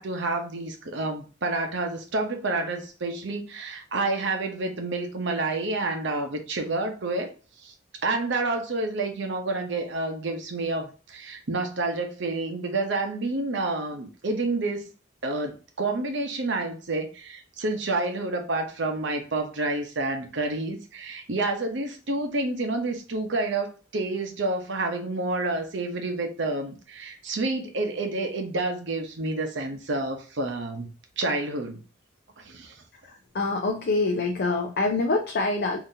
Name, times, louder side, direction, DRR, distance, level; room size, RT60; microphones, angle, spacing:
voice 1, 0.0-7.3 7.6-7.7 8.0-14.9 15.2-31.8 32.4-32.7, right 2 dB, 65° right, 4 dB, 0.8 m, -29 dB
voice 2, 33.0-35.8, left 3 dB, 55° left, 3 dB, 0.5 m, -25 dB
3.9 x 2.7 x 2.7 m, 0.35 s
head